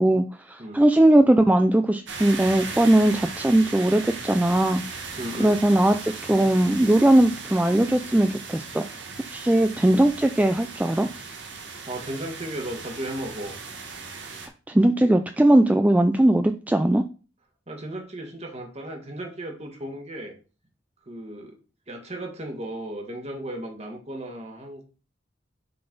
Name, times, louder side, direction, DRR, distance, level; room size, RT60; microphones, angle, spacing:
voice 1, 0.0-4.8 5.4-8.8 9.3-11.1 14.7-17.0, right 1 dB, 10° right, 7 dB, 0.3 m, -19 dB
sound 1, 2.1-14.5, right 4 dB, 70° right, 1.6 m, -37 dB
voice 2, 5.2-5.6 11.5-13.6 17.7-20.3 21.0-21.6 21.9-24.8, right 1 dB, 35° right, 3 dB, 1.7 m, -35 dB
6.7 x 4.1 x 5.3 m, 0.35 s
head